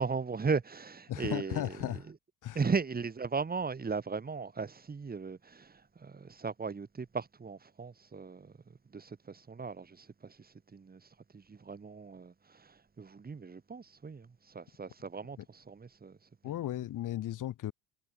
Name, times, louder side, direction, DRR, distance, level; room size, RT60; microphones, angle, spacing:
voice 1, 0.0-2.0 2.5-8.5 8.9-11.0 11.3-16.2 16.5-16.6, right 5 dB, 25° right, 7.2 m, -37 dB
voice 2, 1.1-2.1 2.4-2.6 16.4-17.7, left 13 dB, 50° left, 3.5 m, -35 dB
supercardioid pair, 100°, 38 cm